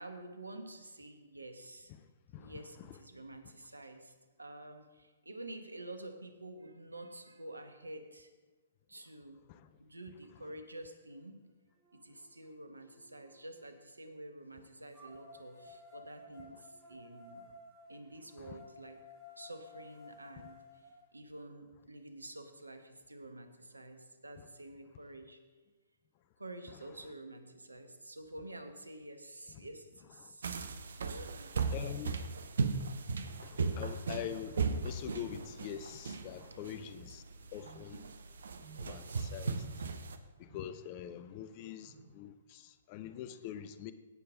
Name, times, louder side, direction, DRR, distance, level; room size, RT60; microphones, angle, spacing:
voice 1, 0.0-1.9 2.3-8.3 8.9-9.4 9.8-11.4 11.9-17.4 17.9-19.0 19.4-25.4 26.4-30.5 31.0-31.7 36.5-36.7, right 1 dB, 80° right, 8 dB, 1.1 m, -49 dB
sound 1, 11.1-11.2 11.8-13.7 14.9-20.9, left 3 dB, ahead, 3.7 m, -55 dB
sound 2, 30.4-40.2, right 4 dB, 60° right, 0.8 m, -37 dB
voice 2, 31.5-32.2 33.4-37.2 37.5-38.1 38.8-39.7 40.4-43.9, left 10 dB, 35° left, 12 dB, 0.6 m, -44 dB
sound 3, 37.6-38.1 38.5-39.0 39.4-39.9 40.5-40.8 41.8-42.2, right 5 dB, 35° right, 1.4 m, -58 dB
16.5 x 6.7 x 3.7 m, 1.4 s
figure-of-eight pair, 120°, 0 cm